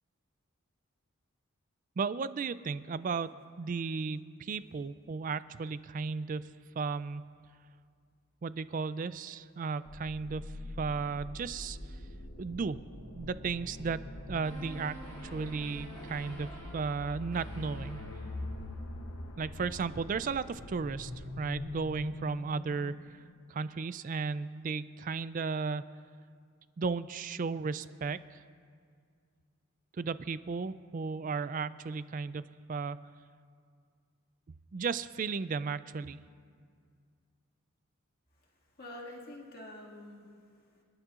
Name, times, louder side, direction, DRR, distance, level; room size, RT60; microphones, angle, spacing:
voice 1, 2.0-3.3 3.6-6.5 6.8-7.2 8.4-11.8 12.4-12.8 13.1-14.0 14.3-16.5 16.7-18.0 19.4-21.1 21.4-23.2 23.5-25.9 26.8-28.4 30.0-32.4 32.7-33.0 34.7-36.2, right 5 dB, 40° right, 15 dB, 0.3 m, -35 dB
sound 1, 9.9-23.6, left 2 dB, 85° left, 0.9 m, -45 dB
sound 2, 11.2-22.1, equal, 5° left, 1.5 m, -50 dB
sound 3, 14.4-19.1, right 1 dB, 20° left, 1.9 m, -49 dB
voice 2, 38.3-40.8, left 1 dB, 45° left, -3 dB, 2.0 m, -48 dB
26.0 x 11.0 x 2.5 m, 2.2 s
head